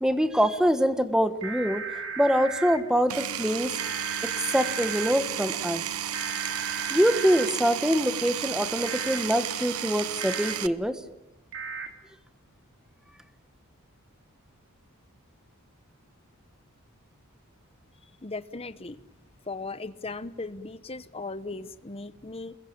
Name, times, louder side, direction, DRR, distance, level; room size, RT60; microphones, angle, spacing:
voice 1, 0.0-1.8 2.2-3.7 4.2-5.8 6.9-11.0, equal, 5° right, 10 dB, 1.4 m, -24 dB
sound 1, 1.4-2.8 3.8-5.1 6.1-7.5 8.8-9.2 10.2-10.5 11.5-11.9, right 5 dB, 55° right, 3.7 m, -35 dB
Power tool, 3.1-10.7, right 10 dB, 80° right, 1.0 m, -33 dB
voice 2, 18.0-19.0 19.4-22.6, left 3 dB, 25° left, 12 dB, 0.9 m, -37 dB
28.5 x 21.5 x 8.7 m, 0.94 s
head